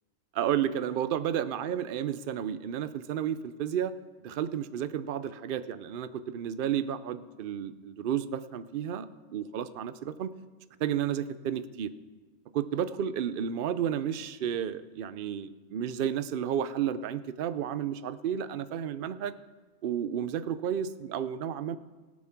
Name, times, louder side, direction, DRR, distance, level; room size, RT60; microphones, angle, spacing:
voice 1, 0.3-3.9 4.2-9.1 9.3-10.3 10.8-11.9 12.5-19.3 19.8-21.8, right 9 dB, 55° right, 13 dB, 0.6 m, -32 dB
17.5 x 6.4 x 5.9 m, 1.3 s
omnidirectional pair, 1.4 m